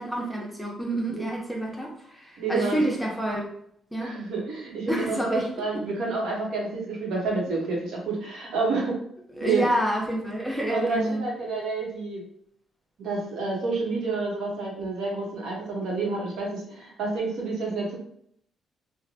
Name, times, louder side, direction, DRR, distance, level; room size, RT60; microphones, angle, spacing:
voice 1, 0.0-3.5 3.9-4.1 4.9-5.5 9.4-11.2, right 1 dB, 5° left, -2 dB, 0.8 m, -28 dB
voice 2, 2.4-2.8 4.0-9.0 9.4-9.7 10.7-12.2 13.0-18.0, right 3 dB, 80° right, -3 dB, 0.9 m, -29 dB
2.9 x 2.1 x 2.7 m, 0.69 s
cardioid pair, 90°, 0 cm